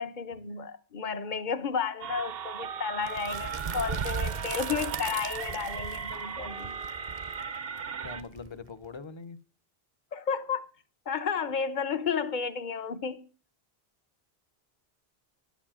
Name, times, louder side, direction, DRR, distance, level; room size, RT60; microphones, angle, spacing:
voice 1, 0.0-6.8 10.1-10.6 11.1-13.3, left 6 dB, 50° left, 1.0 m, -32 dB
sound 1, 2.0-8.2, right 6 dB, 70° right, 0.9 m, -37 dB
sound 2, 3.0-8.9, right 5 dB, 45° right, 0.7 m, -37 dB
voice 2, 8.0-9.4, left 4 dB, 30° left, 0.7 m, -42 dB
10.5 x 7.3 x 7.4 m
omnidirectional pair, 1.0 m